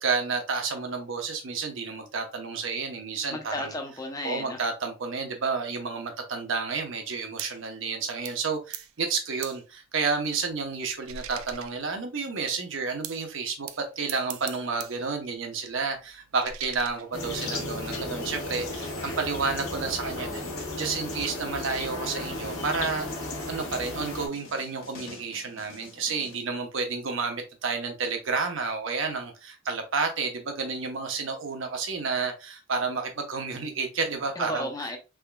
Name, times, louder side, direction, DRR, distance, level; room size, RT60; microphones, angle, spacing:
voice 1, 0.0-3.7 4.2-34.7, right 4 dB, 65° right, 0.8 m, -31 dB
voice 2, 3.3-4.6 34.4-35.0, left 1 dB, 15° left, 0.6 m, -33 dB
sound 1, 7.4-7.6 8.2-8.5 8.7-8.9 9.4-9.6 10.1-12.2 13.0-13.3 13.6-15.0 15.3-17.6, right 9 dB, 80° right, 0.4 m, -43 dB
sound 2, 17.1-24.3, left 2 dB, 85° left, 1.1 m, -34 dB
sound 3, 17.5-26.4, left 3 dB, 65° left, 1.1 m, -49 dB
3.5 x 3.4 x 2.2 m
head